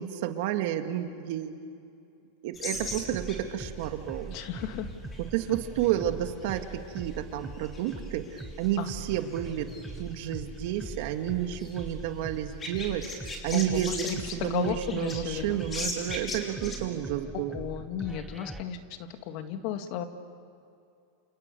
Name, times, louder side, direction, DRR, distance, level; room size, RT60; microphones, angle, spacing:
voice 1, 0.0-1.7 2.4-4.4 5.3-9.7 10.0-14.0 14.3-17.6, right 11 dB, 65° right, 6 dB, 2.1 m, -31 dB
sound 1, 2.5-16.8, left 2 dB, 20° left, 5.5 m, -42 dB
sound 2, 2.7-18.6, right 2 dB, 5° right, 1.6 m, -43 dB
voice 2, 4.3-4.9 8.8-8.9 13.5-15.7 17.3-20.0, left 9 dB, 55° left, 7 dB, 2.1 m, -34 dB
29.5 x 28.0 x 6.9 m, 2.5 s
hypercardioid pair, 120°, 0 cm